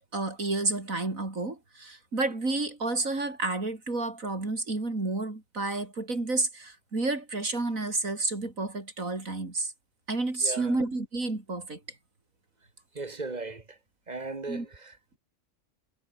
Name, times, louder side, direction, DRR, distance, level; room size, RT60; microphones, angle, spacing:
voice 1, 0.1-9.7 10.1-11.8 14.5-14.7, right 2 dB, 85° right, 5.0 m, -30 dB
voice 2, 10.4-10.8 13.0-13.8 14.1-15.2, right 3 dB, 35° right, 1.8 m, -37 dB
omnidirectional pair, 1.4 m